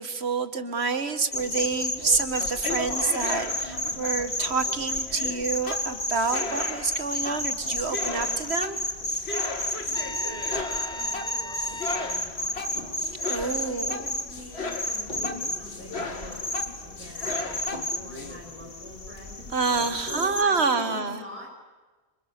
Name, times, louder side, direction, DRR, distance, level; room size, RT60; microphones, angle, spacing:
voice 1, 0.0-8.8 13.3-14.1 19.5-21.2, right 4 dB, 85° right, 11 dB, 1.9 m, -28 dB
sound 1, 1.3-20.4, left 1 dB, 60° left, 2.7 m, -32 dB
sound 2, 2.3-18.4, left 3 dB, 80° left, 2.6 m, -36 dB
Trumpet, 9.9-12.3, left 1 dB, 25° left, 1.4 m, -38 dB
voice 2, 9.9-13.2 13.5-19.6 20.0-21.5, left 1 dB, 10° right, -2 dB, 7.1 m, -45 dB
30.0 x 26.5 x 6.7 m, 1.3 s
omnidirectional pair, 1.1 m